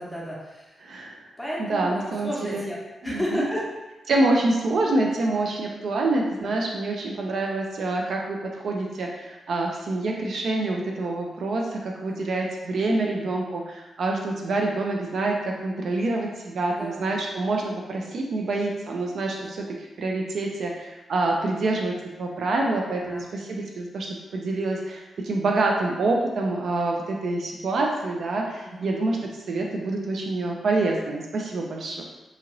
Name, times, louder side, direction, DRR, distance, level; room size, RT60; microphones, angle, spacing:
voice 1, 0.0-0.8 1.4-3.7 6.3-6.5 12.0-12.2 16.7-17.1 19.3-19.5 23.0-23.2 28.6-28.8, equal, ahead, -6 dB, 0.7 m, -33 dB
voice 2, 0.8-1.2 1.7-2.7 3.0-3.5 4.1-19.6 20.0-32.0, right 2 dB, 60° right, 0 dB, 0.3 m, -26 dB
2.8 x 2.5 x 3.0 m, 1.1 s
wide cardioid pair, 150°, 0 cm